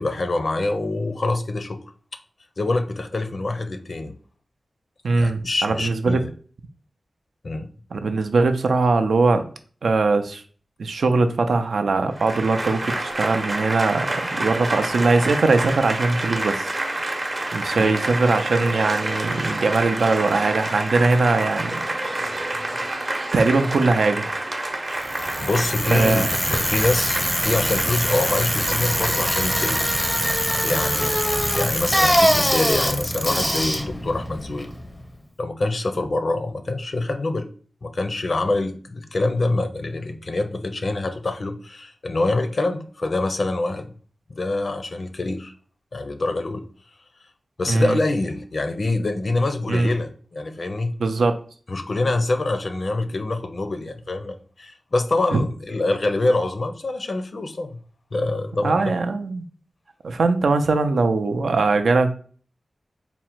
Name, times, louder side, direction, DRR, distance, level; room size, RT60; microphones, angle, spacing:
voice 1, 0.0-1.8 2.6-4.1 5.1-6.3 7.4-7.7 17.8-18.0 25.4-30.0 30.6-31.2 31.5-34.7 35.4-37.5 37.8-43.9 44.3-45.5 45.9-46.6 47.6-51.0 51.7-57.8 58.1-58.8, left 2 dB, 55° left, 7 dB, 0.4 m, -25 dB
voice 2, 5.0-6.2 7.9-9.4 9.8-10.4 10.8-16.7 17.5-22.5 23.3-24.3 25.9-26.3 47.7-48.0 49.7-49.9 51.0-51.3 55.3-55.4 58.6-59.4 60.0-62.1, right 3 dB, 85° right, 7 dB, 0.4 m, -21 dB
Applause / Crowd, 12.1-30.7, right 1 dB, 35° right, 0.7 m, -28 dB
Bicycle, 25.0-35.1, equal, ahead, 0.5 m, -23 dB
3.6 x 2.1 x 4.4 m, 0.43 s
wide cardioid pair, 80°, 0 cm